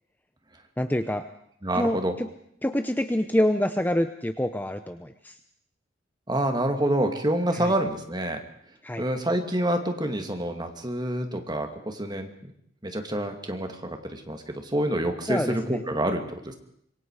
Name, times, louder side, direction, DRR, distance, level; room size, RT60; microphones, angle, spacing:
voice 1, 0.8-1.3 1.7-2.3 2.6-5.4 7.5-7.7 8.8-9.0 15.3-15.8, left 1 dB, 10° left, 9 dB, 0.8 m, -26 dB
voice 2, 1.6-2.1 6.3-8.4 9.0-12.3 12.8-16.5, right 1 dB, 20° right, 5 dB, 2.6 m, -27 dB
26.0 x 23.5 x 5.0 m, 0.70 s
head